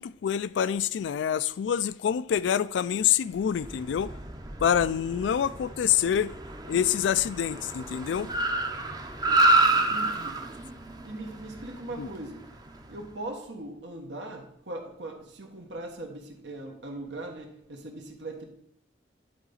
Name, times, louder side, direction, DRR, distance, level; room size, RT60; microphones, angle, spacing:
voice 1, 0.0-4.1 4.6-6.3 6.7-8.3 12.0-12.1, left 9 dB, 90° left, 0.3 m, -26 dB
Car, 3.5-13.0, right 2 dB, 20° right, 0.5 m, -29 dB
voice 2, 9.7-10.4 11.0-12.5 12.9-18.4, right 2 dB, 90° right, 1.4 m, -40 dB
10.5 x 4.1 x 3.9 m
head